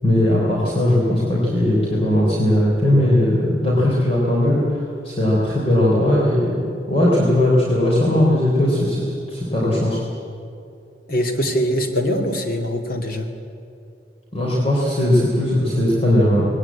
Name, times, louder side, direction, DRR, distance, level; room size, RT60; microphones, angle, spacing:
voice 1, 0.0-6.5 6.9-10.0 14.3-16.5, left 1 dB, 35° left, -5 dB, 3.9 m, -18 dB
voice 2, 11.1-13.3, equal, 55° left, 4 dB, 2.5 m, -22 dB
20.5 x 18.0 x 8.7 m, 2.5 s
head